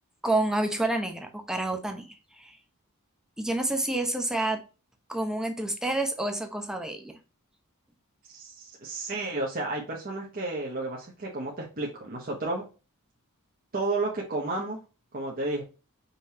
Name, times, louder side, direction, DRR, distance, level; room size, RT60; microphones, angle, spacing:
voice 1, 0.2-2.1 2.4-2.6 3.4-4.6 5.1-7.1, right 2 dB, 5° right, 4 dB, 0.7 m, -28 dB
voice 2, 8.3-12.6 13.7-14.8 15.1-15.6, right 2 dB, 40° right, -2 dB, 0.9 m, -32 dB
5.3 x 3.0 x 2.8 m, 0.32 s
head